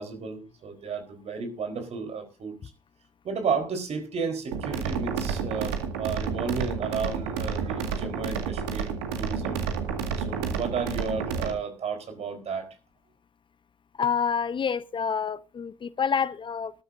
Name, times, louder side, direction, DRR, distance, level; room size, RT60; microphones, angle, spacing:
voice 1, 0.0-2.6 3.2-9.6 10.2-12.7, right 5 dB, 50° right, 4.1 m, -33 dB
sound 1, 4.5-11.5, right 6 dB, 75° right, 2.0 m, -30 dB
voice 2, 14.0-16.7, left 6 dB, 35° left, 0.7 m, -27 dB
20.5 x 12.5 x 2.6 m
figure-of-eight pair, 50°, 14 cm